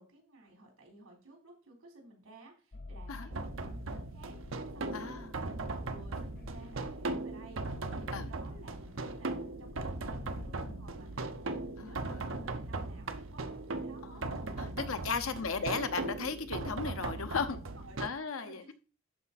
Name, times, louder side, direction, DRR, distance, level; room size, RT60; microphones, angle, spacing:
voice 1, 0.0-5.5 5.9-9.3 9.6-14.2 14.6-14.9 15.2-15.4 17.4-18.1 18.3-18.7, right 2 dB, 85° right, 3.8 m, -56 dB
sound 1, 2.7-11.8, left 2 dB, 45° left, 0.6 m, -50 dB
sound 2, 3.3-18.1, right 2 dB, 65° right, 0.8 m, -38 dB
voice 2, 4.9-5.3 8.1-8.3 11.8-12.5 14.0-17.6 18.0-18.7, left 5 dB, 75° left, 0.9 m, -36 dB
12.0 x 4.5 x 4.1 m
head